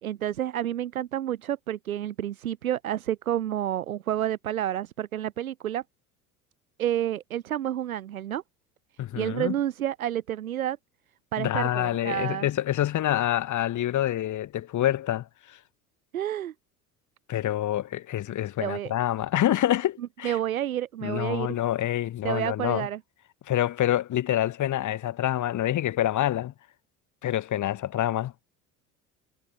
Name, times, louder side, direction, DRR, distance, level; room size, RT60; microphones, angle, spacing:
voice 1, 0.0-5.8 6.8-8.4 9.1-10.8 11.3-12.5 16.1-16.5 18.6-18.9 20.2-21.6 22.2-23.0, right 11 dB, 70° right, 3.7 m, -29 dB
voice 2, 9.0-9.5 11.4-15.6 17.3-20.4 21.0-22.9 23.5-26.5 27.2-28.3, left 12 dB, 45° left, 4.7 m, -27 dB
figure-of-eight pair, 60°, 43 cm